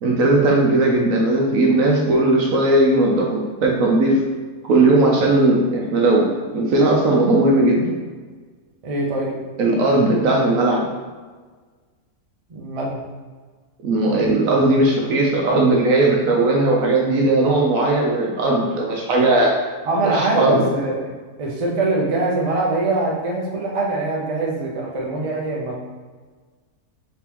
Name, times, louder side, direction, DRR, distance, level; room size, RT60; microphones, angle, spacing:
voice 1, 0.0-4.2 4.6-7.9 9.6-10.9 13.8-19.5 20.0-20.6, right 2 dB, 70° right, -1 dB, 1.0 m, -17 dB
voice 2, 8.8-9.4 12.5-13.0 19.8-21.0 21.4-25.8, right 2 dB, 50° right, -3 dB, 0.4 m, -23 dB
3.7 x 3.6 x 2.9 m, 1.4 s
omnidirectional pair, 1.6 m